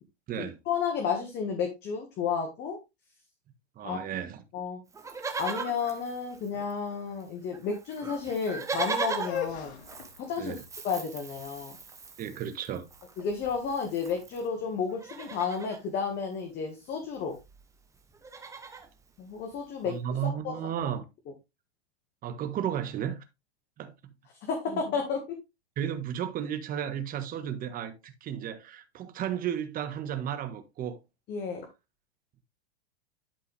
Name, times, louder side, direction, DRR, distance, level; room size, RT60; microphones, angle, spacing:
voice 1, 0.4-2.8 3.8-4.0 4.5-4.8 5.4-9.8 10.3-10.5 10.8-11.7 13.2-17.4 19.2-20.0 20.4-20.5 24.4-25.2 31.3-31.7, left 6 dB, 30° left, 1.8 m, -32 dB
voice 2, 3.7-4.4 10.4-10.6 12.2-12.8 19.8-21.0 22.2-23.2 23.8-24.1 24.7-24.8 25.8-31.0, right 9 dB, 25° right, 1.4 m, -34 dB
Livestock farm animals working animals, 4.9-6.9 7.2-7.3 7.5-14.5 14.9-15.8 17.0-17.1 17.3-17.6 17.9-18.9 19.5-19.6, right 4 dB, 10° right, 1.1 m, -39 dB
sound 1, 9.1-15.0, left 10 dB, 80° left, 1.9 m, -42 dB
11.5 x 4.6 x 3.4 m
hypercardioid pair, 130°, 33 cm